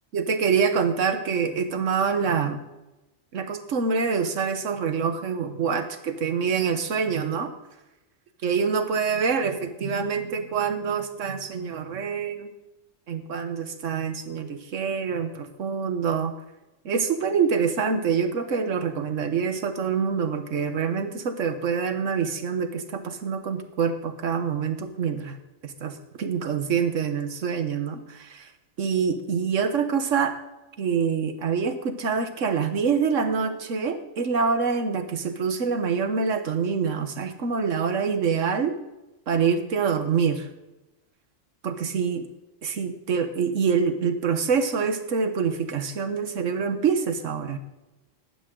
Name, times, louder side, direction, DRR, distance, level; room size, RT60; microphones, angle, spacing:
voice 1, 0.1-2.6 3.3-7.5 8.4-12.5 13.1-16.3 16.8-25.4 25.6-28.5 28.8-30.3 30.8-38.7 39.3-40.5 41.6-42.3 42.6-47.6, right 6 dB, 80° right, 9 dB, 1.5 m, -26 dB
16.0 x 11.0 x 3.8 m, 1.0 s
omnidirectional pair, 1.3 m